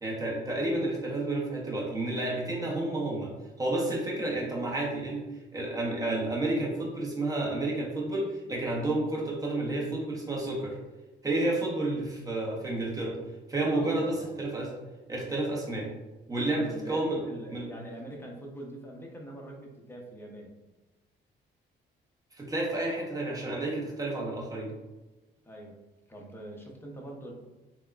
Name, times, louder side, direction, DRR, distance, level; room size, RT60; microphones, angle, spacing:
voice 1, 0.0-3.3 3.6-5.2 5.5-10.8 11.2-13.2 13.5-14.7 15.1-15.9 16.3-17.2 17.5-17.7 22.4-24.7, right 2 dB, 20° right, -3 dB, 0.9 m, -30 dB
voice 2, 13.7-14.4 16.4-20.5 25.4-25.8 26.1-27.3, right 1 dB, 10° left, -1 dB, 0.6 m, -44 dB
3.4 x 2.2 x 2.3 m, 1.1 s
cardioid pair, 90°, 20 cm